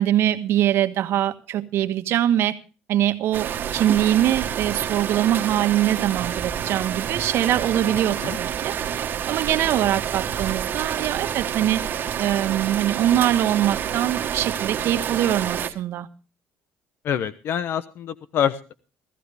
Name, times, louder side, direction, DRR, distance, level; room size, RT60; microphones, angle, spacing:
voice 1, 0.0-2.6 2.9-8.7 9.3-11.8 12.2-16.1, right 12 dB, 70° right, 1.3 m, -23 dB
sound 1, 3.3-15.7, right 9 dB, 50° right, 1.5 m, -28 dB
voice 2, 17.0-18.7, left 9 dB, 60° left, 0.9 m, -26 dB
16.5 x 15.0 x 3.5 m
cardioid pair, 105°, 4 cm